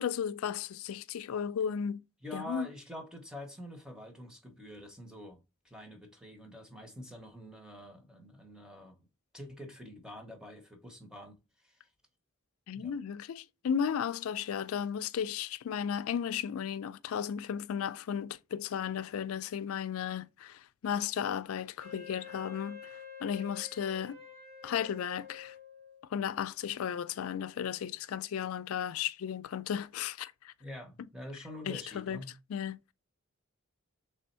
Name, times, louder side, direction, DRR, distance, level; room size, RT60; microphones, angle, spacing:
voice 1, 0.0-2.0 2.3-2.7 12.7-24.2 24.6-25.5 26.1-30.5 31.7-32.2 32.5-32.8, left 8 dB, 85° left, 0.3 m, -35 dB
voice 2, 2.2-5.4 5.6-9.0 9.3-11.9 12.7-12.9 30.6-32.3, left 1 dB, 5° right, 0.7 m, -46 dB
Wind instrument woodwind instrument, 21.8-26.1, left 6 dB, 45° right, 2.0 m, -49 dB
3.5 x 3.4 x 4.2 m
head